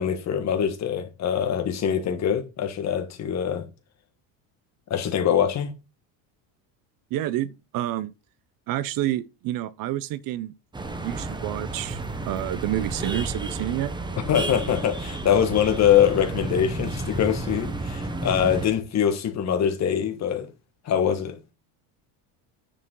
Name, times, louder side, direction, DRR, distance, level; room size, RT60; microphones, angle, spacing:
voice 1, 0.0-3.6 4.9-5.7 14.3-20.5 20.8-21.4, left 9 dB, 40° left, 1.5 m, -23 dB
voice 2, 7.1-8.1 8.7-10.5 11.0-12.0 12.3-13.9, right 14 dB, 50° right, 0.6 m, -28 dB
sound 1, 10.7-18.7, right 2 dB, 10° right, 1.0 m, -31 dB
9.7 x 4.9 x 3.8 m
cardioid pair, 125°, 42 cm